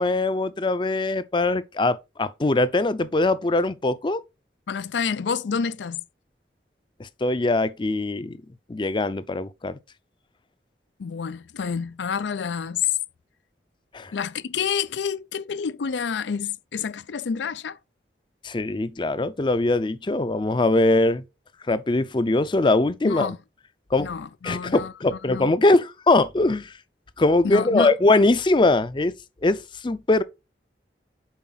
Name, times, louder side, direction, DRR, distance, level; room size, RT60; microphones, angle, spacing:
voice 1, 0.0-4.2 7.0-8.4 8.7-9.8 13.9-14.1 18.4-21.2 21.7-23.3 23.9-24.1 24.4-26.7 27.2-29.1 29.4-30.2, left 2 dB, 25° left, 0.5 m, -22 dB
voice 2, 4.7-6.0 11.0-12.9 14.1-17.8 23.0-23.4 24.0-25.5 27.4-27.9, left 6 dB, 85° left, 0.4 m, -28 dB
7.3 x 4.6 x 3.9 m
head